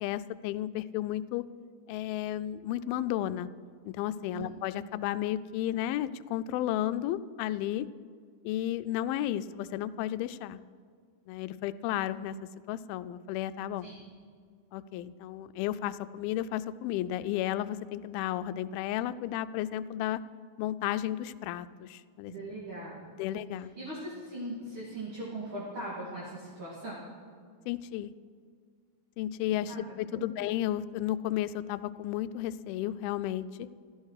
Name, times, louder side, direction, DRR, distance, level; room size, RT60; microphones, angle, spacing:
voice 1, 0.0-1.5 1.9-3.5 3.9-7.9 8.4-10.6 11.3-12.4 12.7-13.9 14.7-20.2 20.6-22.3 23.2-23.7 27.7-28.1 29.2-33.7, left 12 dB, 85° left, 13 dB, 2.3 m, -33 dB
voice 2, 22.3-23.0 23.8-27.1 29.7-29.8 30.1-30.4, right 1 dB, 35° right, -7 dB, 2.8 m, -40 dB
15.5 x 13.5 x 4.8 m, 2.1 s
omnidirectional pair, 4.4 m